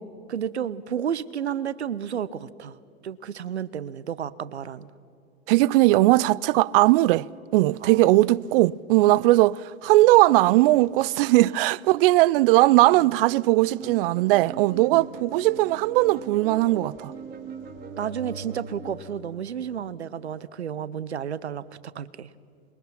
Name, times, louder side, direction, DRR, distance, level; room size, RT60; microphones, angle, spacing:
voice 1, 0.3-2.8 3.0-4.9 7.8-8.2 11.4-11.6 13.0-13.1 14.9-15.0 18.0-22.3, right 8 dB, 85° right, 0.8 m, -32 dB
voice 2, 5.5-7.3 7.5-17.1, right 18 dB, 55° right, 0.5 m, -19 dB
sound 1, 13.6-19.1, right 5 dB, 30° right, 2.8 m, -40 dB
27.0 x 22.5 x 5.9 m
figure-of-eight pair, 85°, 32 cm